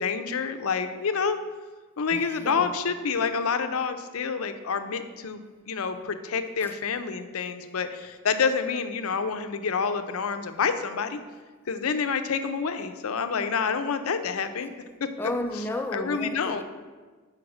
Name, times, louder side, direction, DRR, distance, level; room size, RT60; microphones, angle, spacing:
voice 1, 0.0-1.4 2.0-11.2 11.7-14.7 15.0-15.1 15.9-16.6, left 5 dB, 90° left, 9 dB, 0.5 m, -28 dB
voice 2, 2.1-2.8 6.6-6.8 15.2-16.6, left 1 dB, 10° left, 5 dB, 0.4 m, -33 dB
6.3 x 4.5 x 6.0 m, 1.4 s
head